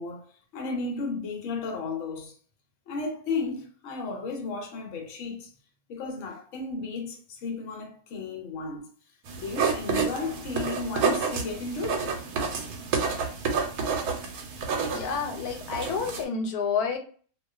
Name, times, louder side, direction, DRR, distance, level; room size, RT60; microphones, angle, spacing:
voice 1, 0.0-2.3 2.9-5.5 5.9-8.8 9.4-12.2 14.8-15.1, left 3 dB, 65° left, 1.0 m, -34 dB
sound 1, 9.3-16.2, right 5 dB, 90° right, 1.1 m, -29 dB
voice 2, 14.9-17.0, left 5 dB, 90° left, 1.1 m, -29 dB
2.4 x 2.3 x 2.3 m
omnidirectional pair, 1.5 m